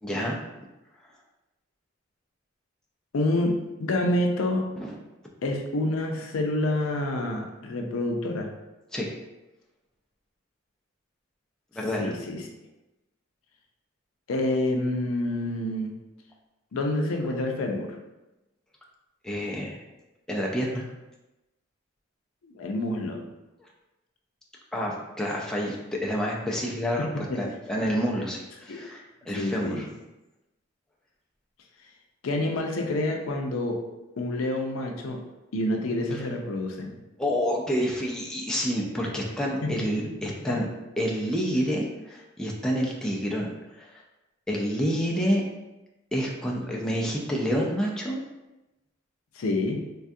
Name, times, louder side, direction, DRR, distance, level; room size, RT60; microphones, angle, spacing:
voice 1, 0.0-0.4 4.8-4.9 8.9-9.1 11.7-12.1 19.2-19.8 20.3-20.8 24.7-27.1 27.3-29.9 36.1-36.2 37.2-40.7 41.0-44.0 44.5-45.4 46.1-48.2, equal, 5° left, -3 dB, 0.3 m, -28 dB
voice 2, 3.1-4.7 5.4-8.5 12.0-12.4 14.3-15.9 16.7-18.0 22.5-23.2 27.0-27.5 28.7-28.8 29.3-29.9 32.2-33.8 34.2-35.2 35.5-36.9 39.6-39.7 40.5-40.6 49.4-49.9, left 1 dB, 90° left, 2 dB, 0.4 m, -28 dB
3.4 x 2.3 x 2.6 m, 1.0 s
head